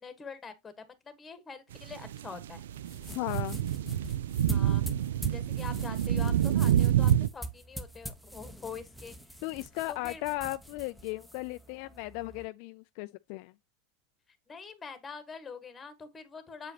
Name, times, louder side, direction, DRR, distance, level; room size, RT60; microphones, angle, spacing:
voice 1, 0.0-2.6 4.5-4.8 5.3-9.1 9.9-10.2 14.5-16.7, left 5 dB, 15° left, 1.4 m, -44 dB
sound 1, 1.7-7.3, right 11 dB, 90° right, 0.3 m, -27 dB
sound 2, 2.8-12.4, right 1 dB, 5° right, 0.9 m, -44 dB
voice 2, 3.1-3.6 9.4-13.5, left 19 dB, 60° left, 0.4 m, -36 dB
7.8 x 4.9 x 2.9 m
supercardioid pair, 130°, 0 cm